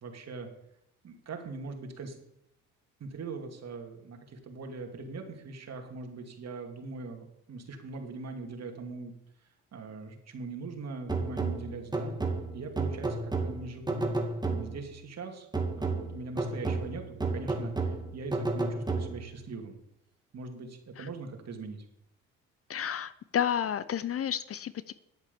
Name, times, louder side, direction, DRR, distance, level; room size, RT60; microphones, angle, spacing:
voice 1, 0.0-0.5 1.0-2.2 3.0-9.1 9.7-12.2 12.5-14.1 14.5-15.5 15.8-19.8 20.3-21.8, right 3 dB, 55° right, 4 dB, 2.6 m, -41 dB
sound 1, 11.1-15.0 15.5-19.4, right 3 dB, 15° right, 2.1 m, -32 dB
voice 2, 22.7-24.9, left 9 dB, 45° left, 16 dB, 0.7 m, -31 dB
10.5 x 8.1 x 7.1 m, 0.79 s
supercardioid pair, 75°, 32 cm